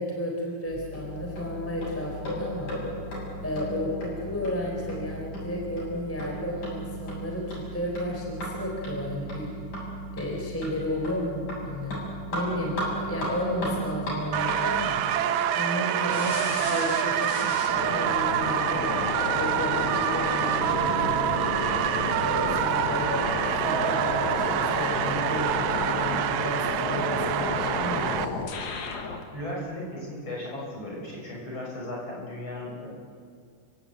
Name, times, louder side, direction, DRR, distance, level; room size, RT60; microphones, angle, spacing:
voice 1, 0.0-2.7 3.4-9.5 10.1-12.0 12.3-15.0 15.5-19.0 19.3-21.4 22.2-28.3, left 1 dB, 5° left, -1 dB, 4.1 m, -33 dB
sound 1, 0.7-14.8, right 1 dB, 85° left, 8.9 m, -36 dB
sound 2, 14.3-28.2, right 10 dB, 75° right, 2.2 m, -26 dB
sound 3, 16.1-29.2, left 4 dB, 65° left, 3.3 m, -32 dB
voice 2, 29.3-32.9, left 1 dB, 40° left, -2 dB, 6.8 m, -36 dB
29.5 x 16.5 x 9.0 m, 2.2 s
omnidirectional pair, 3.5 m